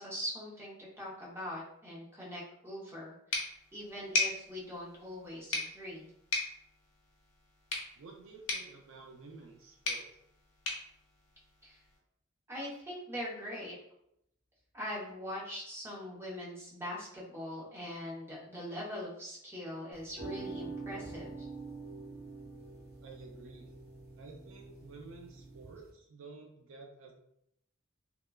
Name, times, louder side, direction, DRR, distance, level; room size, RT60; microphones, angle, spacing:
voice 1, 0.0-6.1 11.6-11.8 12.5-13.7 14.7-21.5, equal, 10° right, -5 dB, 0.8 m, -42 dB
sound 1, 3.3-12.0, left 3 dB, 80° left, 0.6 m, -39 dB
voice 2, 8.0-10.1 23.0-23.7 24.2-27.1, right 3 dB, 65° right, 1 dB, 0.4 m, -51 dB
sound 2, 19.9-25.9, right 3 dB, 35° right, 1.1 m, -45 dB
2.8 x 2.2 x 2.2 m, 0.75 s
head